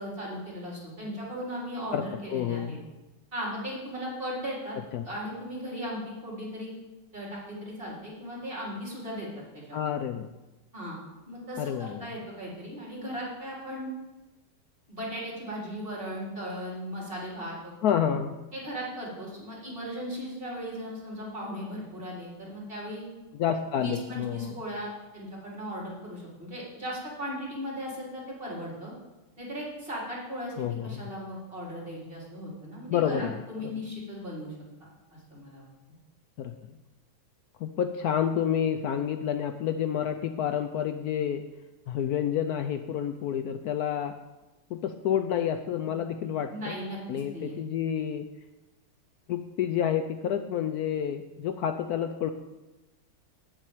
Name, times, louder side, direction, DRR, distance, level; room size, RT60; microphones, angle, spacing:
voice 1, 0.0-2.8 3.3-4.8 5.0-6.7 7.1-9.3 9.7-9.8 10.7-11.0 11.3-13.9 14.9-17.7 18.5-23.1 23.7-28.9 29.4-34.5 35.3-35.7 45.8-45.9 46.2-47.6, equal, 25° right, -5 dB, 3.9 m, -37 dB
voice 2, 2.3-2.8 4.9-5.0 9.7-10.3 11.6-12.1 17.8-18.4 23.4-24.5 30.6-31.1 32.9-33.4 33.6-33.7 36.4-36.5 37.6-41.4 41.9-44.1 44.7-46.8 47.1-48.3 49.3-52.3, left 9 dB, 90° left, 8 dB, 0.8 m, -29 dB
8.3 x 7.5 x 8.9 m, 1.1 s
omnidirectional pair, 2.3 m